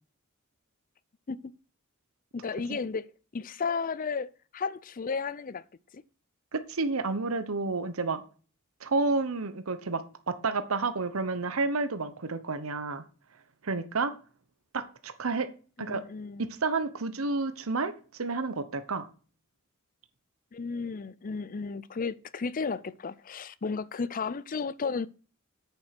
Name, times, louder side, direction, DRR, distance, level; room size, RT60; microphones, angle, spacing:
voice 1, 2.3-5.6 5.9-6.0 15.8-16.5 20.5-25.1, left 5 dB, 40° left, 0.5 m, -34 dB
voice 2, 6.5-8.2 8.8-13.0 13.6-14.1 14.7-15.5 15.8-16.0 16.4-19.1, right 3 dB, 90° right, 1.0 m, -30 dB
8.5 x 6.9 x 5.9 m
head